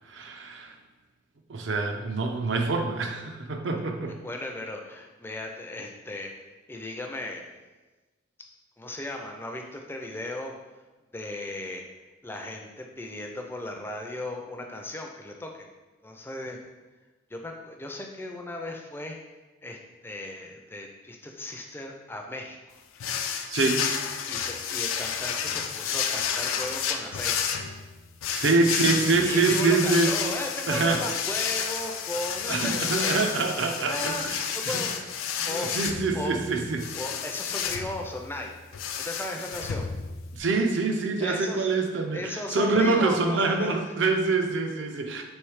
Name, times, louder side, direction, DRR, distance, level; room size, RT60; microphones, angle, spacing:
voice 1, 0.1-0.7 1.5-4.1 23.5-23.9 28.3-30.1 30.7-31.0 32.5-34.8 35.4-36.8 40.4-45.2, right 3 dB, 65° right, 4 dB, 0.5 m, -25 dB
voice 2, 4.2-6.3 6.7-7.4 8.8-10.5 11.1-11.8 12.2-15.7 16.0-16.6 17.3-19.2 19.6-19.8 20.0-22.6 24.3-27.5 29.3-33.2 33.9-34.2 34.5-35.1 35.5-35.7 36.1-36.4 37.0-38.5 39.0-39.9 41.2-41.7 42.1-43.8 45.1-45.2, left 1 dB, 10° left, 2 dB, 0.4 m, -36 dB
sound 1, 23.0-40.4, left 7 dB, 85° left, 0.4 m, -31 dB
3.2 x 3.1 x 4.7 m, 1.2 s
head